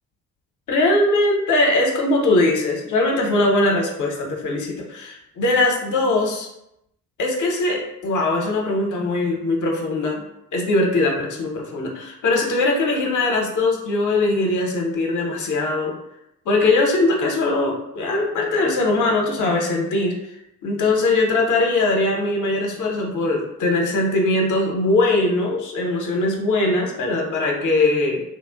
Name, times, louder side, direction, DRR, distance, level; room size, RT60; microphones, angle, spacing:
voice 1, 0.7-6.5 7.2-10.3 10.5-15.9 16.5-20.1 20.6-28.2, left 2 dB, 45° left, 1 dB, 0.8 m, -21 dB
3.2 x 2.4 x 2.3 m, 0.82 s
figure-of-eight pair, 45°, 43 cm